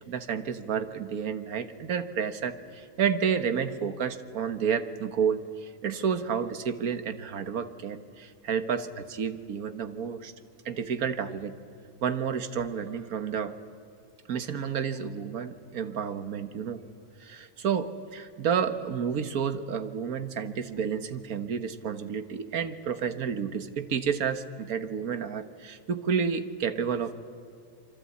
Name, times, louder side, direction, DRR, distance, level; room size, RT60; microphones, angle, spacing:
voice 1, 0.1-10.3 10.6-11.5 12.0-13.6 14.3-16.8 17.2-27.1, right 7 dB, 55° right, 10 dB, 1.6 m, -30 dB
26.5 x 24.5 x 8.5 m, 2.3 s
omnidirectional pair, 1.9 m